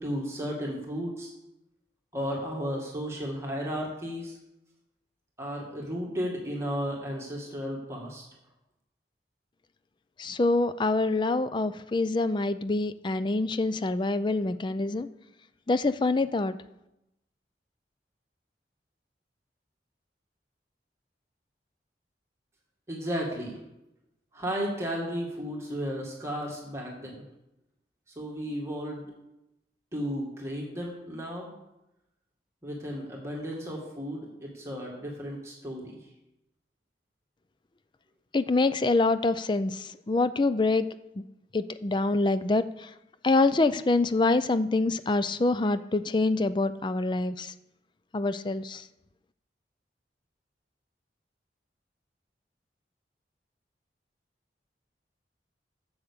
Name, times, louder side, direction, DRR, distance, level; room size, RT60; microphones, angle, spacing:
voice 1, 0.0-1.3 2.1-4.4 5.4-8.2 22.9-23.6 24.3-27.2 28.2-29.1 29.9-31.5 32.6-36.0, equal, 15° right, -2 dB, 2.0 m, -34 dB
voice 2, 10.2-15.1 15.7-16.6 38.3-40.9 41.2-41.3 41.5-42.9 43.2-47.5 48.1-48.8, left 3 dB, 25° left, 13 dB, 0.4 m, -26 dB
9.5 x 7.2 x 6.8 m, 0.90 s
head